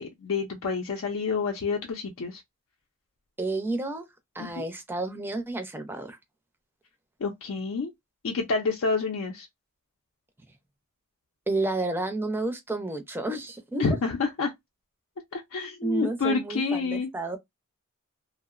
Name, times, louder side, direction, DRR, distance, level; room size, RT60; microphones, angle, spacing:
voice 1, 0.0-2.4 4.4-4.7 7.2-7.9 8.2-9.5 13.8-14.5 15.3-17.1, left 4 dB, 75° left, 0.5 m, -28 dB
voice 2, 3.4-4.1 4.4-6.2 11.5-13.8 15.8-17.4, right 2 dB, 10° right, 0.4 m, -31 dB
2.6 x 2.0 x 2.3 m
head